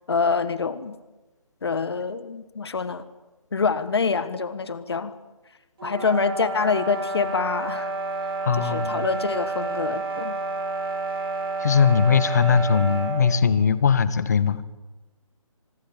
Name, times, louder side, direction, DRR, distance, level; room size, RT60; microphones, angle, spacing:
voice 1, 0.1-0.9 1.6-3.0 3.5-5.2 5.8-7.9 8.5-10.3, left 5 dB, 45° left, 14 dB, 1.5 m, -26 dB
sound 1, 5.8-13.3, right 3 dB, 45° right, 6.6 m, -29 dB
voice 2, 8.4-9.1 11.6-14.6, left 6 dB, 30° left, 16 dB, 1.1 m, -20 dB
25.0 x 20.0 x 8.8 m, 1.1 s
hypercardioid pair, 175°, 18 cm